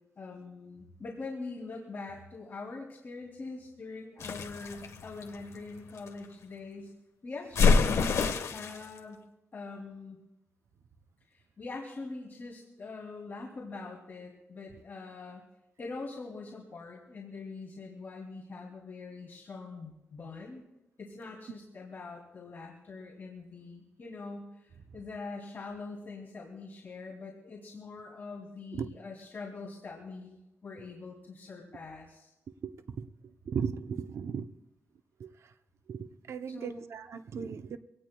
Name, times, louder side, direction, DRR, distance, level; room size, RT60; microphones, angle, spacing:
voice 1, 0.2-6.9 7.2-8.2 8.5-9.3 9.5-10.2 11.3-15.4 15.8-20.6 21.0-32.3 36.5-36.8, left 3 dB, 40° left, -3 dB, 2.7 m, -43 dB
sound 1, 4.2-6.1 7.6-8.9, left 4 dB, 80° left, 1.2 m, -26 dB
voice 2, 32.6-33.1 33.5-34.5 35.2-35.3 35.9-37.8, right 6 dB, 70° right, 9 dB, 0.7 m, -36 dB
24.5 x 18.0 x 2.3 m, 0.93 s
wide cardioid pair, 135°, 5 cm